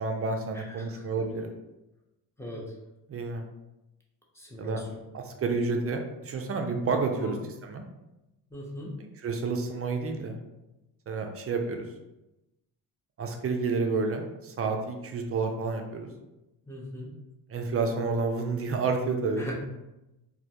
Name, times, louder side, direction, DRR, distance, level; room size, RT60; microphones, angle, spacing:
voice 1, 0.0-1.5 3.1-3.4 4.6-4.8 5.1-7.4 7.6-7.8 9.2-10.4 11.1-11.8 13.2-16.1 17.5-19.5, right 4 dB, 35° right, 4 dB, 0.4 m, -30 dB
voice 2, 0.5-1.1 2.4-2.6 4.3-5.0 7.1-7.4 8.5-8.9 16.7-17.1 19.4-19.5, equal, 5° left, -4 dB, 0.7 m, -39 dB
2.3 x 2.1 x 2.8 m, 0.97 s
supercardioid pair, 75°, 43 cm